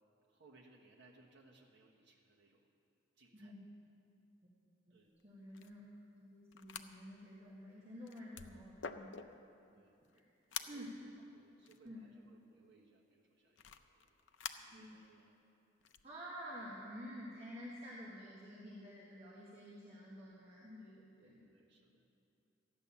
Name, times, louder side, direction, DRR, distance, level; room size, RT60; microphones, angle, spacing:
voice 1, 0.3-2.7 3.2-3.5 4.9-5.1 9.7-10.0 10.5-10.8 11.3-14.2 14.5-15.3 21.2-22.1, right 3 dB, 65° right, -2 dB, 1.3 m, -66 dB
sound 1, 5.2-5.3 5.5-5.7 6.5-6.8 7.5-7.6 7.9-9.5 10.0-10.2 10.5-10.8 11.6-11.9 13.6-14.6 15.8-16.0, left 7 dB, 70° left, 0.6 m, -47 dB
voice 2, 5.2-5.8 6.1-9.2 10.1-10.2 10.7-11.2 11.8-12.1 14.7-15.0 16.0-21.4, equal, 30° right, -5 dB, 1.5 m, -50 dB
14.0 x 9.4 x 7.1 m, 2.6 s
head